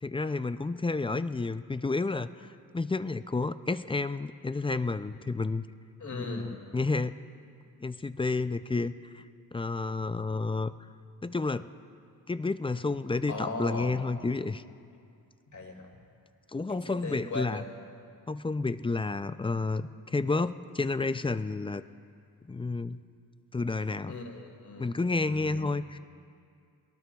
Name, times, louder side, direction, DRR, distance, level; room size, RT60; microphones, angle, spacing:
voice 1, 0.0-5.6 6.1-7.1 7.8-9.2 9.5-10.7 11.2-11.7 12.3-14.6 16.5-17.6 18.3-21.8 22.5-23.0 23.5-24.2 24.8-26.0, left 3 dB, 15° left, 12 dB, 0.3 m, -30 dB
voice 2, 6.0-6.5 13.3-13.9 15.5-15.9 16.7-17.7 24.1-24.9 25.2-25.6, left 3 dB, 50° left, 0 dB, 2.5 m, -38 dB
22.0 x 18.5 x 2.3 m, 2.3 s
cardioid pair, 70°, 38 cm